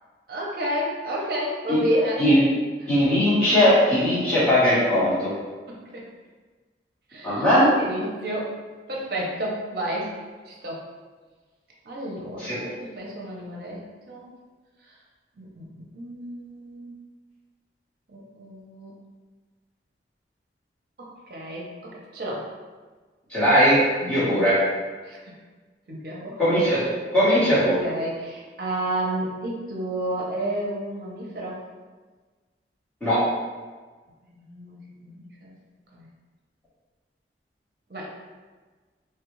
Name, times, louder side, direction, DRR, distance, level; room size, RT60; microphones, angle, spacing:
voice 1, 0.3-2.2 2.8-2.9 5.7-6.0 7.1-8.5 8.9-10.1 10.5-10.8 11.9-14.3 15.4-16.9 18.1-18.9 21.0-22.5 24.0-24.4 25.1-25.3 25.9-26.4 27.6-31.6 34.3-35.5 35.9-36.1 37.9-38.1, right 1 dB, 55° right, -3 dB, 0.6 m, -31 dB
voice 2, 2.9-5.3 7.2-7.7 12.4-12.6 23.3-23.8 24.1-24.6 26.4-27.8 33.0-33.2, equal, 5° left, -14 dB, 1.1 m, -19 dB
3.2 x 2.3 x 3.0 m, 1.4 s
head